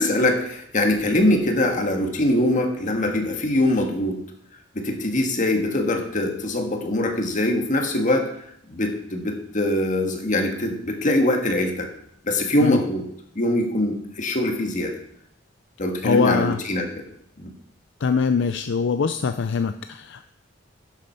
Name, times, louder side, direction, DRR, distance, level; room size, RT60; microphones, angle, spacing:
voice 1, 0.0-4.2 4.7-8.4 8.7-11.9 12.2-13.0 13.3-15.0 15.8-17.0 17.4-17.5, left 1 dB, 40° left, 3 dB, 1.7 m, -23 dB
voice 2, 16.0-16.6 18.0-20.3, left 5 dB, 65° left, 9 dB, 0.5 m, -23 dB
10.5 x 7.5 x 5.6 m, 0.72 s
head